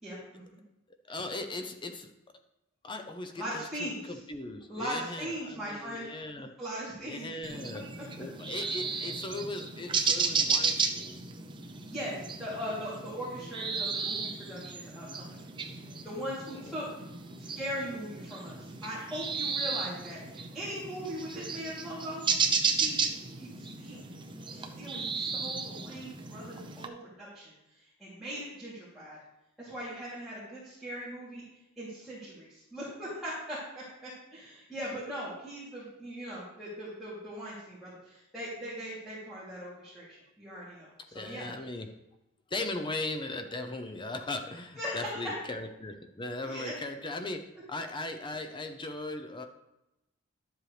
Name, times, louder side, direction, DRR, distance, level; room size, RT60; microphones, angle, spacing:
voice 1, 0.0-0.6 3.4-4.2 4.7-6.1 6.6-7.3 8.0-8.1 11.8-15.3 15.6-15.8 16.0-16.9 17.4-22.2 22.8-23.0 23.4-24.1 24.4-29.2 29.6-31.4 31.8-41.5 44.7-45.2 46.3-46.7, equal, ahead, -11 dB, 3.0 m, -40 dB
voice 2, 1.1-2.1 2.8-6.5 7.0-7.8 8.2-11.2 16.5-16.8 41.0-41.9 42.5-49.4, left 2 dB, 25° left, 6 dB, 0.6 m, -38 dB
sound 1, 7.4-26.9, right 5 dB, 20° right, 0.7 m, -34 dB
12.0 x 7.7 x 3.3 m, 0.91 s
head